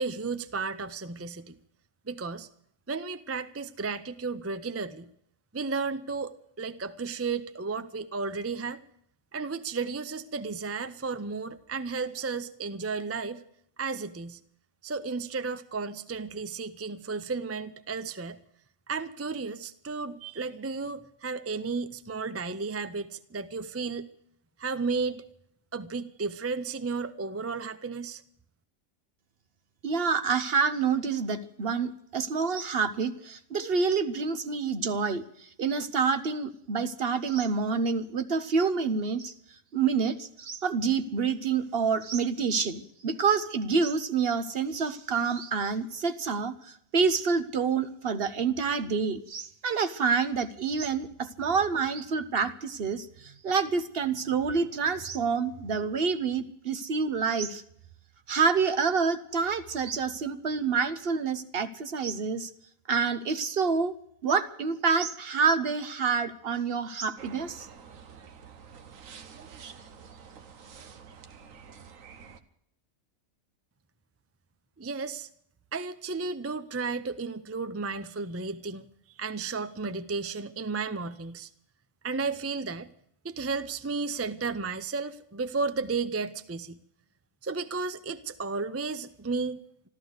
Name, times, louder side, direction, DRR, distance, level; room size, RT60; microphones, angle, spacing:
voice 1, 0.0-1.5 2.1-2.5 2.9-5.1 5.5-8.8 9.3-13.4 13.8-14.4 14.8-18.4 18.9-24.1 24.6-25.2 25.7-28.2 74.8-75.3 75.7-81.5 82.0-82.9 83.2-86.8 87.4-89.9, right 4 dB, 20° right, 12 dB, 0.3 m, -33 dB
voice 2, 29.8-39.3 39.7-57.6 58.3-62.5 62.9-64.0 64.2-67.7, right 5 dB, 50° right, 12 dB, 1.0 m, -28 dB
sound 1, 67.2-72.4, right 6 dB, 70° right, 1.4 m, -48 dB
13.5 x 13.5 x 8.0 m, 0.69 s
omnidirectional pair, 1.4 m